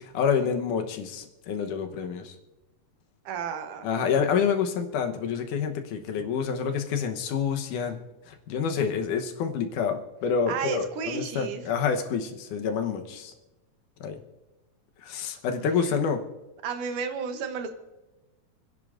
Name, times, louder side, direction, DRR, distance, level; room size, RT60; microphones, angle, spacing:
voice 1, 0.0-2.3 3.8-8.0 8.3-13.3 14.0-14.2 15.0-16.2, left 6 dB, 80° left, 5 dB, 2.6 m, -28 dB
voice 2, 3.3-3.9 10.5-11.6 16.6-17.8, right 6 dB, 80° right, 7 dB, 2.6 m, -32 dB
29.0 x 10.5 x 2.6 m, 1.1 s
omnidirectional pair, 3.6 m